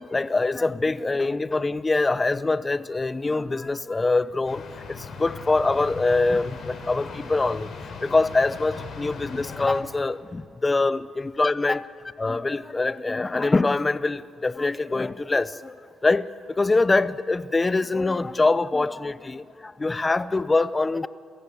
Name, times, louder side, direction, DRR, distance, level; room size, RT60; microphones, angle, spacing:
voice 1, 0.1-7.7 8.0-11.8 12.2-15.8 16.0-21.1, left 3 dB, 20° left, 0.7 m, -24 dB
sound 1, 4.4-9.8, left 5 dB, 65° left, 4.0 m, -38 dB
27.5 x 15.5 x 8.6 m
cardioid pair, 90°, 0 cm